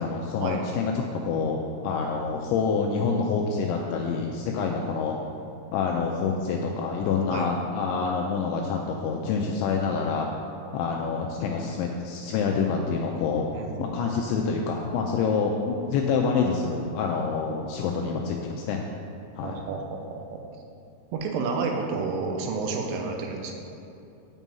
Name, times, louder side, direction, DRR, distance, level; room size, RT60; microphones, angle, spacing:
voice 1, 0.0-1.6 1.8-5.2 5.7-10.3 10.7-13.5 13.8-18.8 19.4-19.6, left 5 dB, 90° left, 0 dB, 2.6 m, -27 dB
voice 2, 13.5-14.0 19.4-20.4 21.1-23.5, right 4 dB, 80° right, 2 dB, 3.3 m, -30 dB
9.0 x 5.4 x 7.3 m, 2.7 s
omnidirectional pair, 5.9 m